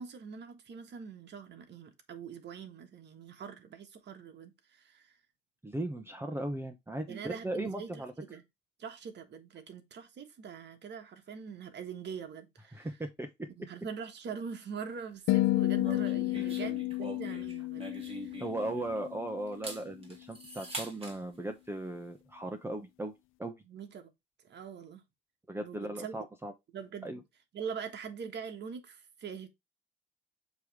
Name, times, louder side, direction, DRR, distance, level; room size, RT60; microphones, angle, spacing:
voice 1, 0.0-5.2 7.1-8.4 8.8-13.0 13.5-18.3 23.6-24.1 24.4-25.0 25.6-26.2 26.7-27.2 27.5-29.5, right 6 dB, 60° right, 1.4 m, -43 dB
voice 2, 5.6-8.1 12.7-13.5 16.3-16.4 18.4-23.1 23.4-23.5 25.5-26.5 27.0-27.2, right 1 dB, 10° right, 0.9 m, -37 dB
sound 1, 15.3-19.6, left 17 dB, 85° left, 0.4 m, -31 dB
sound 2, 15.8-19.1 19.5-21.2, right 2 dB, 30° right, 2.5 m, -44 dB
6.9 x 3.1 x 4.8 m
cardioid pair, 90°, 20 cm